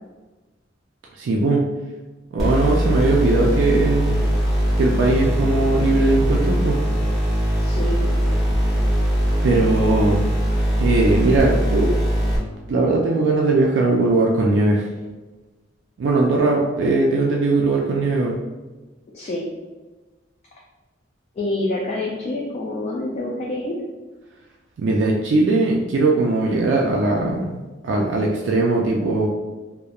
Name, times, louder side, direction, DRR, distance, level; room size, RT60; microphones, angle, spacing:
voice 1, 1.2-1.7 2.3-4.2 4.8-6.8 9.4-10.3 10.8-12.0 12.7-14.9 16.0-18.4 24.8-29.3, right 2 dB, 65° right, -1 dB, 0.3 m, -19 dB
sound 1, 2.4-12.4, equal, ahead, 1.0 m, -21 dB
voice 2, 7.6-8.1 19.1-19.5 21.4-23.7, left 1 dB, 35° left, -3 dB, 0.3 m, -27 dB
2.8 x 2.0 x 2.3 m, 1.2 s
head